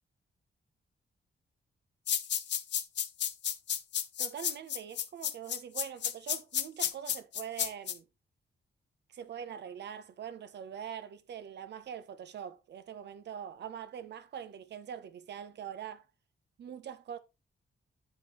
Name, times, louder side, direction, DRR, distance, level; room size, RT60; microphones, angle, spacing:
sound 1, 2.1-7.9, left 9 dB, 75° left, 0.8 m, -32 dB
voice 1, 4.2-8.1 9.1-16.0 16.6-17.2, right 9 dB, 70° right, 0.8 m, -43 dB
8.6 x 7.4 x 3.0 m
wide cardioid pair, 170°, 18 cm